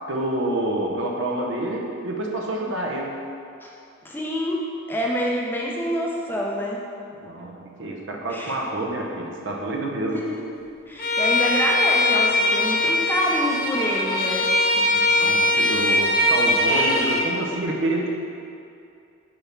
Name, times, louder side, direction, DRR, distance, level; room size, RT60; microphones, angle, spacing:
voice 1, 0.1-3.1 7.1-10.2 14.9-18.2, right 1 dB, 60° right, -1 dB, 0.9 m, -28 dB
voice 2, 4.0-6.8 8.3-8.6 10.1-10.5 10.9-14.5 14.8-14.9, equal, 10° left, -3 dB, 0.7 m, -27 dB
Bowed string instrument, 11.0-17.3, left 1 dB, 45° left, 0.9 m, -21 dB
7.8 x 3.5 x 5.8 m, 2.5 s
head